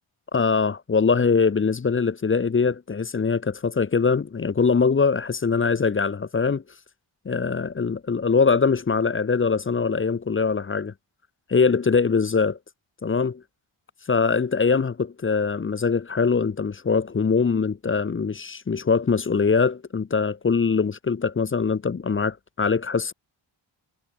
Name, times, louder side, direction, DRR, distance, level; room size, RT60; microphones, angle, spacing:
voice 1, 0.3-6.6 7.3-10.9 11.5-12.6 13.0-13.4 14.1-23.1, left 5 dB, 25° left, 0.5 m, -22 dB
wide cardioid pair, 70°, 50 cm